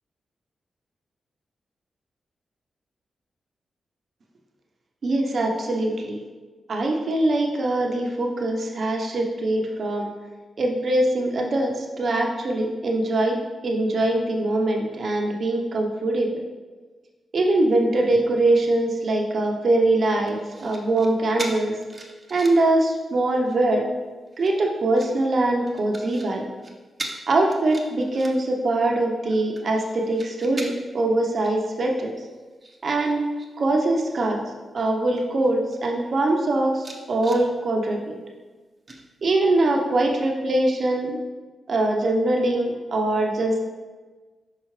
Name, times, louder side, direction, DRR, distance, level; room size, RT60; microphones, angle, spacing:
voice 1, 5.0-6.2 6.7-10.1 10.6-16.3 17.3-21.8 22.3-23.8 24.4-26.4 27.3-32.1 32.8-33.2 33.6-34.4 34.7-38.1 39.2-41.2 41.7-43.6, right 2 dB, 60° right, 1 dB, 0.9 m, -22 dB
sound 1, 20.3-21.1 21.4-22.7 23.2-23.6 24.3-25.1 25.7-26.3 26.6-26.7 27.0-27.2 27.5-28.6 29.0-31.0 31.4-31.6 31.9-33.5 33.8-34.2 34.8-34.9 35.1-35.8 36.3-36.4 36.7-37.4 38.9-39.6 40.0-40.2, right 2 dB, 35° right, 0.9 m, -40 dB
5.7 x 5.5 x 3.2 m, 1.3 s
cardioid pair, 60°, 0 cm